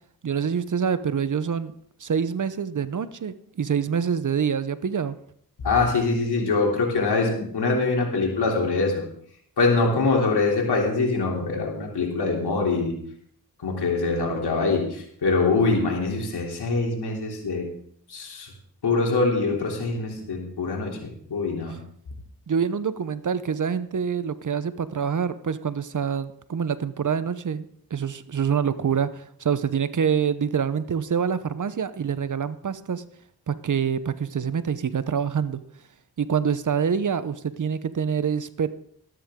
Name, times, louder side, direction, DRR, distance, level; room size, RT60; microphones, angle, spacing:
voice 1, 0.2-1.7 2.0-5.2 22.5-27.6 27.9-33.0 33.5-35.6 36.2-38.7, right 7 dB, 50° right, 14 dB, 0.8 m, -26 dB
voice 2, 5.6-9.0 9.6-13.0 13.6-17.7 18.1-18.5 18.8-21.8, left 3 dB, 80° left, 0 dB, 3.2 m, -24 dB
13.5 x 12.5 x 3.7 m, 0.66 s
cardioid pair, 60°, 39 cm